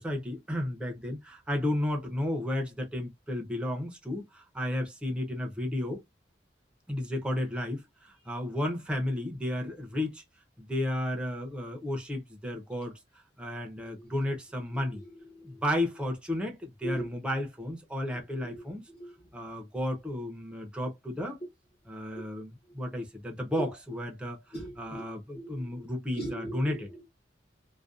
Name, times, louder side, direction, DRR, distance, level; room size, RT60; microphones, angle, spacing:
voice 1, 0.0-6.0 6.9-10.2 10.6-13.0 13.4-15.0 15.4-18.8 19.3-21.4 21.9-24.4 24.8-26.9, left 1 dB, 5° right, 0.5 m, -33 dB
voice 2, 14.9-15.6 16.8-17.1 18.1-18.6 18.9-19.1 21.4-21.5 23.6-23.7 24.5-25.0 25.3-25.9 26.2-27.0, right 1 dB, 35° left, 0.8 m, -39 dB
2.5 x 2.1 x 2.3 m
head